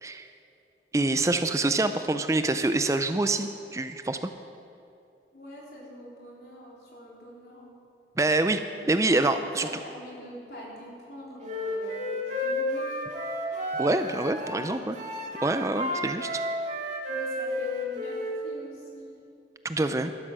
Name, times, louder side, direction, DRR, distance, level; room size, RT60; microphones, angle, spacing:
voice 1, 0.9-4.3 8.2-8.6 8.9-9.7 13.8-15.0 15.4-16.3 19.6-20.1, right 2 dB, 15° right, 9 dB, 0.4 m, -26 dB
voice 2, 5.3-7.8 9.4-13.1 14.5-15.0 17.1-19.2, equal, 65° left, -4 dB, 3.6 m, -45 dB
Wind instrument woodwind instrument, 11.4-14.6 14.9-18.3, left 1 dB, 40° right, 2.1 m, -32 dB
12.5 x 12.0 x 6.1 m, 2.6 s
head